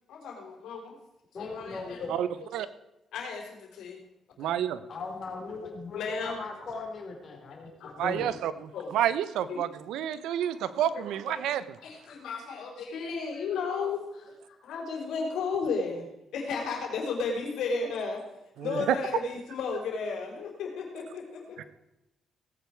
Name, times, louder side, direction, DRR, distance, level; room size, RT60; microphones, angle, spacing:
voice 1, 0.1-1.0 1.4-2.5 3.1-4.0 4.4-4.5 5.6-6.4 7.8-8.2 8.7-9.0 9.5-9.6 10.9-11.4 11.8-14.3 14.6-16.1 16.3-18.2 18.6-21.7, left 4 dB, 80° left, 1 dB, 4.3 m, -34 dB
voice 2, 1.3-2.1 4.9-8.3, left 3 dB, 45° left, 1 dB, 4.2 m, -38 dB
voice 3, 4.4-4.8 8.0-8.5 8.9-11.6 18.7-18.8, right 10 dB, 85° right, 15 dB, 0.8 m, -29 dB
18.0 x 8.9 x 4.7 m, 0.93 s
cardioid pair, 90°, 0 cm